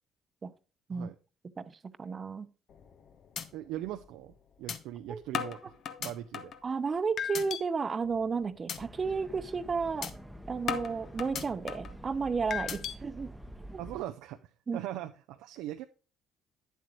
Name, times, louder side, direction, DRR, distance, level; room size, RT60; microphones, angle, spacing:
voice 1, 1.6-2.5 5.1-5.2 6.6-10.1 10.5-13.3 13.7-13.8 14.7-14.8, right 5 dB, 35° right, 0.8 m, -33 dB
sound 1, 2.7-3.0 3.4-3.5 3.9-4.0 4.7-4.8 5.3-6.6 7.2-7.6 8.0-8.3 8.7-8.8 9.2-9.4 10.0-10.1 10.7-11.9 12.5-12.9, left 8 dB, 60° left, 0.8 m, -35 dB
voice 2, 3.5-6.5 11.3-11.5 13.8-15.8, right 13 dB, 80° right, 0.4 m, -40 dB
sound 2, 8.8-14.0, right 1 dB, 5° right, 0.9 m, -47 dB
9.3 x 7.7 x 3.0 m
hypercardioid pair, 60°, 0 cm